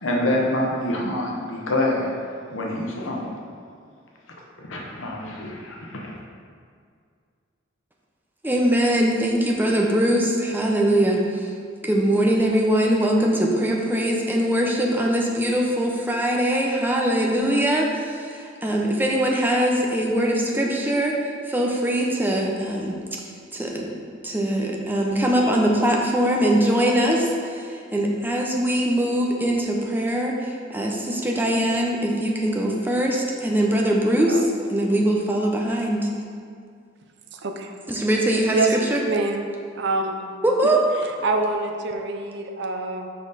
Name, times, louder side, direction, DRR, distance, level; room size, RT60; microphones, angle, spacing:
voice 1, 0.0-2.1 2.5-3.3 4.6-6.2, left 1 dB, 80° left, -1 dB, 1.1 m, -26 dB
voice 2, 8.4-11.5 11.8-23.0 23.2-23.9 24.2-36.1 37.9-39.0 40.4-40.8, right 1 dB, 10° right, -1 dB, 0.7 m, -22 dB
voice 3, 37.3-37.7 38.5-38.7 39.1-39.4 39.8-40.2 41.2-43.1, right 3 dB, 60° right, 4 dB, 0.6 m, -26 dB
6.1 x 5.1 x 4.1 m, 2.2 s
head